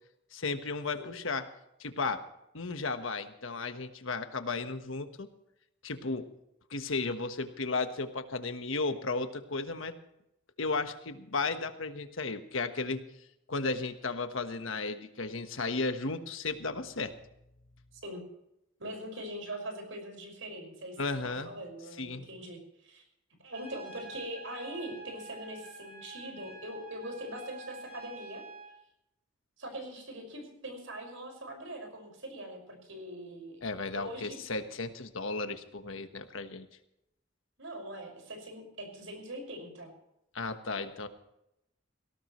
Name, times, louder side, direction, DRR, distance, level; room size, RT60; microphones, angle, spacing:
voice 1, 0.3-1.5 1.8-2.2 2.5-5.3 5.8-6.3 6.7-9.9 10.6-13.0 13.5-17.2 21.0-21.5 22.0-22.3 33.6-36.7 40.3-41.1, left 3 dB, 80° left, 8 dB, 1.4 m, -34 dB
voice 2, 18.8-21.0 21.2-23.0 23.4-28.4 29.6-33.6 33.9-34.4 37.6-39.9, right 1 dB, 75° right, 4 dB, 5.7 m, -42 dB
Trumpet, 23.5-28.7, right 3 dB, 50° right, 7.1 m, -48 dB
18.5 x 18.0 x 3.2 m, 0.83 s
head